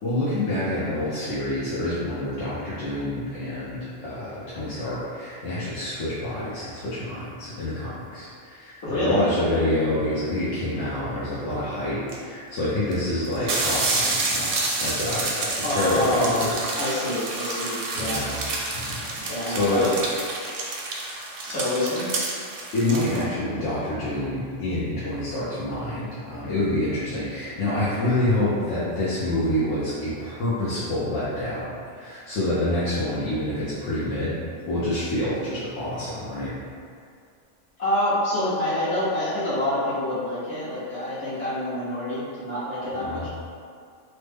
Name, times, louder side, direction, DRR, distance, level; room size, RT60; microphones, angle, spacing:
voice 1, 0.0-14.5 14.8-16.7 17.9-18.4 18.7-19.9 22.7-34.4 34.7-36.6 42.9-43.3, left 1 dB, 80° left, -11 dB, 1.0 m, -27 dB
voice 2, 8.8-9.2 15.6-16.5 16.8-18.2 19.3-19.9 21.5-22.1 37.8-43.3, left 1 dB, 65° left, -11 dB, 1.4 m, -26 dB
sound 1, 12.1-12.2 12.9-13.0 13.2-23.2, right 2 dB, 60° right, 0.6 m, -29 dB
3.1 x 2.1 x 3.3 m, 2.3 s
omnidirectional pair, 1.3 m